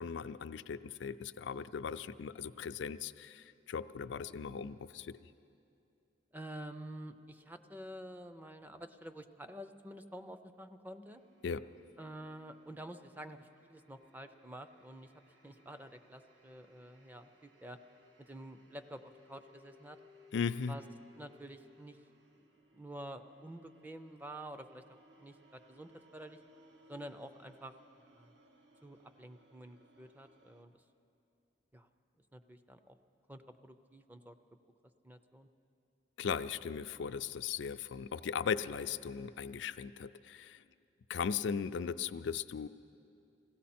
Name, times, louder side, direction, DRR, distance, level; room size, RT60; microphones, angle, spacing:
voice 1, 0.0-5.2 11.4-11.6 20.3-20.7 36.2-40.6 41.1-42.7, left 6 dB, 80° left, 11 dB, 0.4 m, -38 dB
voice 2, 6.3-11.2 12.0-15.1 15.4-17.8 18.2-20.0 20.7-20.8 21.2-22.0 22.7-24.8 25.2-26.4 26.9-27.7 28.1-28.3 28.8-30.7 31.7-31.9 32.3-33.0 33.3-34.4 35.0-35.5, right 1 dB, 10° right, 9 dB, 0.5 m, -49 dB
sound 1, 11.1-30.6, left 1 dB, 85° right, 1.2 m, -65 dB
21.0 x 16.0 x 4.3 m, 2.6 s
head